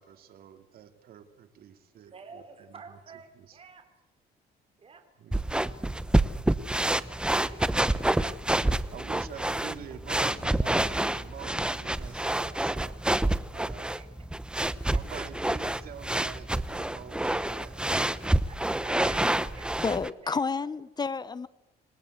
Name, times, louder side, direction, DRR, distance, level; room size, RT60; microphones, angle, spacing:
voice 1, 0.0-3.0 3.3-3.6 5.2-5.6 8.9-17.8 18.3-18.7, right 9 dB, 65° right, 7 dB, 2.8 m, -47 dB
voice 2, 2.1-3.8 4.8-5.0 6.6-9.0 9.9-10.0 14.0-14.1 14.9-15.0 18.5-18.6 18.8-20.4, right 5 dB, 35° right, 6 dB, 4.8 m, -50 dB
sound 1, 5.3-20.1, right 1 dB, 5° right, 0.9 m, -28 dB
voice 3, 19.8-21.5, left 4 dB, 25° left, 16 dB, 1.1 m, -30 dB
27.5 x 20.0 x 8.2 m, 0.94 s
cardioid pair, 110°, 17 cm